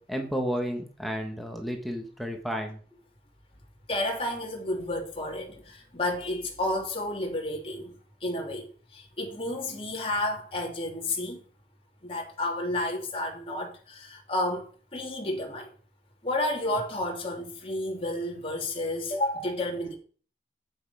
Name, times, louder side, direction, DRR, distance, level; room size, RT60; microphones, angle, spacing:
voice 1, 0.1-2.8, equal, ahead, 1.4 m, -32 dB
voice 2, 3.9-7.9 8.2-11.4 12.0-15.7 16.2-19.9, left 1 dB, 30° left, 2.6 m, -31 dB
9.4 x 8.1 x 4.9 m
head